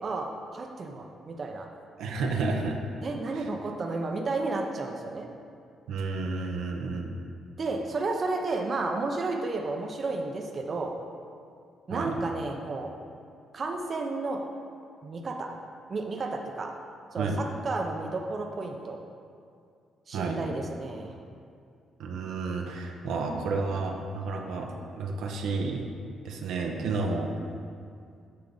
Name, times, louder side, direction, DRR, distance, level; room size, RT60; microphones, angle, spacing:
voice 1, 0.0-1.7 3.0-5.3 7.6-10.9 11.9-12.9 13.5-14.4 15.0-15.5 15.9-16.7 17.1-19.0 20.1-21.1, right 3 dB, 40° right, 2 dB, 0.7 m, -32 dB
voice 2, 2.0-2.8 3.3-3.5 5.9-7.1 11.9-12.1 17.2-17.4 20.1-20.4 22.0-24.7 25.0-25.8 26.2-27.3, right 3 dB, 80° right, 1 dB, 0.8 m, -31 dB
8.6 x 5.8 x 3.9 m, 2.3 s
cardioid pair, 90°, 0 cm